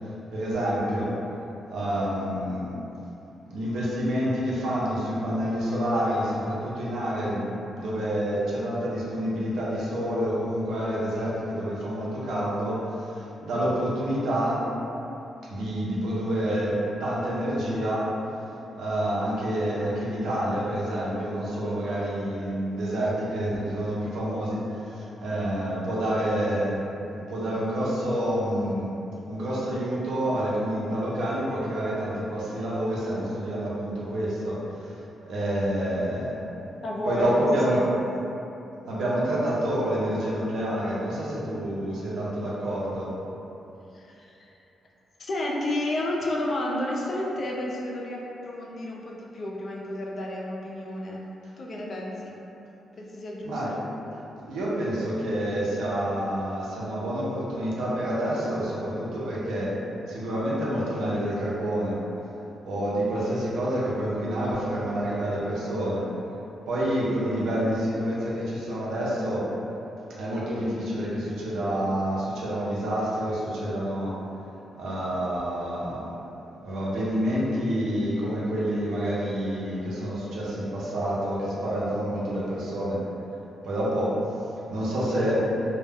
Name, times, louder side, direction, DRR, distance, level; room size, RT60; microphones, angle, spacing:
voice 1, 0.3-1.1 1.7-2.8 3.5-14.7 15.5-18.1 18.7-29.0 29.3-36.4 37.1-37.8 38.9-43.1 53.4-53.7 54.4-59.8 60.1-62.0 62.6-66.1 66.7-69.5 70.2-74.2 74.7-76.1 76.3-83.0 83.6-84.2 84.7-85.5, equal, 85° right, -7 dB, 0.6 m, -28 dB
voice 2, 36.8-38.0 43.9-44.5 45.2-51.2 51.6-52.4 53.0-53.6, left 1 dB, 50° left, -3 dB, 0.4 m, -31 dB
2.2 x 2.1 x 3.4 m, 3.0 s
cardioid pair, 100°, 0 cm